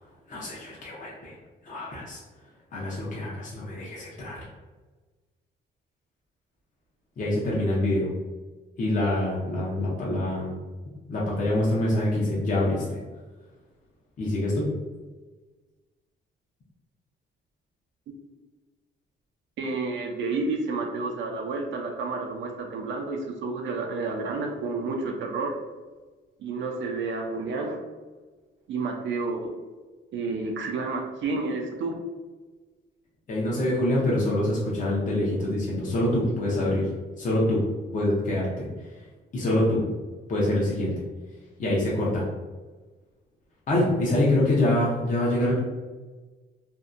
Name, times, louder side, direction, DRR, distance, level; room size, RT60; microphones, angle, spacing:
voice 1, 0.3-1.3 1.6-2.2 2.7-4.5 7.2-8.1 8.8-10.5 11.1-13.0 14.2-14.7 33.3-36.9 37.2-37.7 37.9-38.7 39.3-39.8 40.3-41.0 41.6-42.3 43.7-45.6, left 1 dB, 40° left, -5 dB, 0.6 m, -25 dB
voice 2, 19.6-25.5 26.4-27.8 28.7-29.5 30.1-31.9 39.5-39.7, right 3 dB, 70° right, 2 dB, 0.5 m, -30 dB
2.6 x 2.1 x 2.4 m, 1.3 s
cardioid pair, 90°, 20 cm